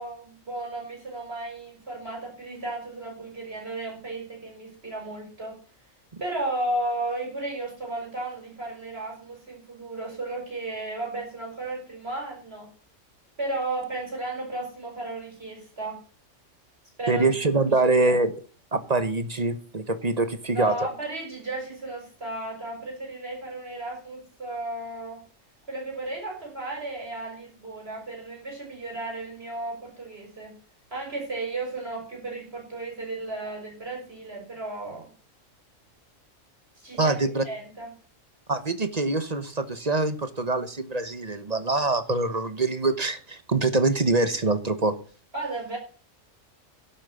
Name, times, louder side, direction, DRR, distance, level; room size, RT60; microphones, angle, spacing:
voice 1, 0.0-5.6 6.2-12.7 13.4-16.0 17.0-17.3 17.9-18.2 20.5-25.2 25.7-30.5 30.9-35.1 36.8-37.2 37.4-37.9 45.3-45.8, right 2 dB, 50° right, -1 dB, 6.7 m, -34 dB
voice 2, 17.1-18.3 18.7-20.8 37.0-37.4 38.5-44.9, right 3 dB, 35° right, 11 dB, 1.1 m, -24 dB
11.5 x 8.9 x 8.3 m, 0.41 s
omnidirectional pair, 1.3 m